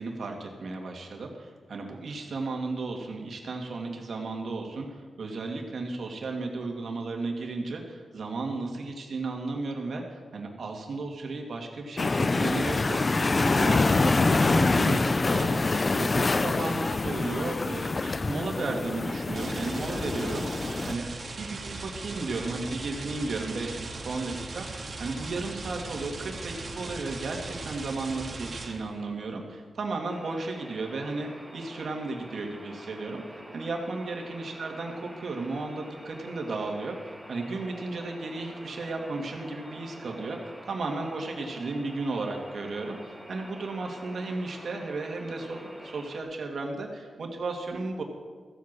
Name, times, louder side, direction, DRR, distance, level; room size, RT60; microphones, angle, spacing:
voice 1, 0.0-4.9 5.2-13.2 13.5-40.4 40.6-48.0, right 3 dB, 65° right, 2 dB, 2.3 m, -34 dB
sound 1, 12.0-20.9, left 3 dB, 30° left, 0.4 m, -25 dB
sound 2, 15.3-16.3 19.4-29.1, right 3 dB, 45° right, 2.0 m, -39 dB
sound 3, 30.1-46.2, equal, 5° left, 2.1 m, -46 dB
15.0 x 8.2 x 7.6 m, 1.5 s
wide cardioid pair, 105°, 0 cm